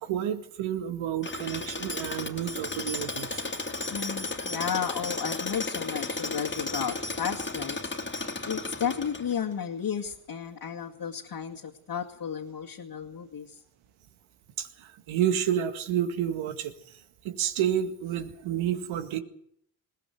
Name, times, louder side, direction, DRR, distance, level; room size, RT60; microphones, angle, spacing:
voice 1, 0.0-3.4 14.6-19.2, right 10 dB, 85° right, 9 dB, 2.1 m, -30 dB
Tools, 1.2-9.5, left 3 dB, 25° left, 2.5 m, -34 dB
voice 2, 3.9-13.6, left 7 dB, 50° left, -1 dB, 2.4 m, -33 dB
20.5 x 17.5 x 8.1 m, 0.69 s
supercardioid pair, 65°, 47 cm